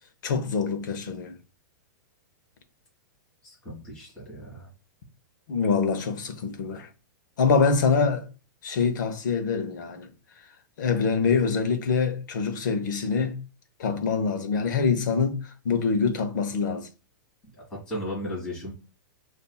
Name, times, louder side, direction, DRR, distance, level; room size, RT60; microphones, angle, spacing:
voice 1, 0.2-1.3 5.5-6.9 7.4-8.3 8.6-10.1 10.8-13.4 13.8-16.9, left 5 dB, 60° left, 0.8 m, -25 dB
voice 2, 3.4-4.7 17.4-18.7, equal, 10° left, 1.6 m, -36 dB
6.8 x 2.6 x 2.3 m
supercardioid pair, 170°, 11 cm